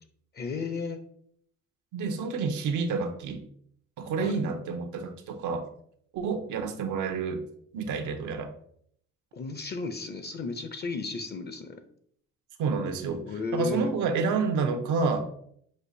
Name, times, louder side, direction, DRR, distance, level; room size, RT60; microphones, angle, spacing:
voice 1, 0.3-1.0 4.2-4.4 9.3-11.8 13.3-13.9, left 4 dB, 35° left, 7 dB, 0.5 m, -34 dB
voice 2, 1.9-3.4 4.0-5.7 6.1-7.4 7.7-8.5 12.6-13.2 13.5-15.3, right 4 dB, 80° right, 6 dB, 0.6 m, -29 dB
6.3 x 2.4 x 2.6 m, 0.65 s
cardioid pair, 90°, 30 cm